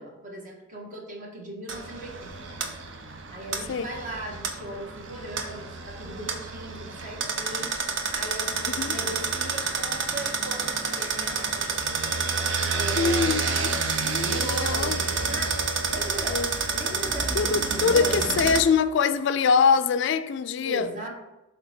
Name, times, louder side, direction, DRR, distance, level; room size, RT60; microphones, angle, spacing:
voice 1, 0.0-2.6 3.3-7.7 8.1-11.8 12.7-13.2 14.2-16.4 16.7-18.4 20.6-21.1, right 1 dB, 40° right, 1.4 m, -38 dB
sound 1, 1.7-18.6, right 4 dB, 65° right, 0.7 m, -29 dB
voice 2, 13.0-15.0 16.3-16.5 17.4-20.9, left 5 dB, 60° left, 0.3 m, -24 dB
7.7 x 3.4 x 4.3 m
head